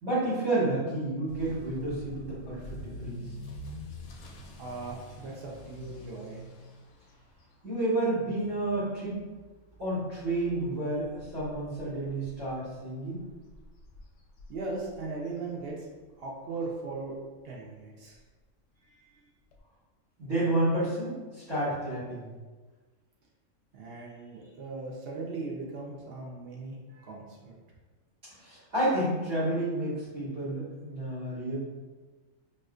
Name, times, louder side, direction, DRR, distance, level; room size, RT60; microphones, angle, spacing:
voice 1, 0.0-3.2 7.6-9.2 9.8-13.2 20.2-22.3 28.4-31.5, right 1 dB, 80° right, -16 dB, 2.1 m, -30 dB
Motor vehicle (road) / Accelerating revving vroom, 1.3-16.1 16.4-16.8 17.3-17.4 17.7-17.8 18.1-18.2 19.5-19.6, left 2 dB, 65° left, 0.8 m, -47 dB
voice 2, 4.6-6.4 14.5-15.9 16.2-17.2 17.4-18.2 18.8-19.3 23.7-27.6, right 3 dB, 60° right, -2 dB, 0.7 m, -38 dB
4.2 x 2.4 x 2.4 m, 1.3 s
omnidirectional pair, 1.4 m